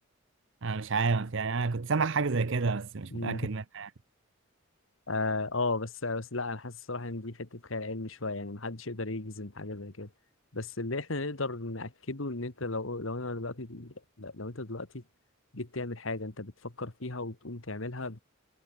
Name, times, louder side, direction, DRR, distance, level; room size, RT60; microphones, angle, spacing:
voice 1, 0.6-3.9, right 4 dB, 60° right, 0.8 m, -29 dB
voice 2, 3.1-3.5 5.1-10.1 10.5-15.0 15.5-18.2, left 2 dB, 65° left, 2.0 m, -35 dB
head